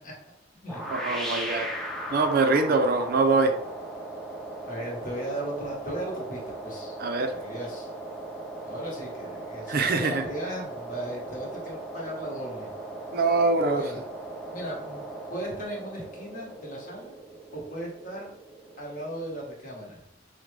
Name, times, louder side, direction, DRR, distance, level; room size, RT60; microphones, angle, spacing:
sound 1, 0.7-19.5, right 1 dB, ahead, 0.5 m, -38 dB
voice 1, 0.9-1.7 2.1-3.5 7.0-7.3 9.7-10.2 13.1-13.9, right 3 dB, 50° right, 6 dB, 0.4 m, -23 dB
voice 2, 4.6-7.0 7.3-7.9 8.6-12.7 13.8-14.0 14.5-17.2 17.5-18.3 18.8-20.0, right 1 dB, 45° left, -2 dB, 1.1 m, -37 dB
5.0 x 2.1 x 3.2 m, 0.73 s
head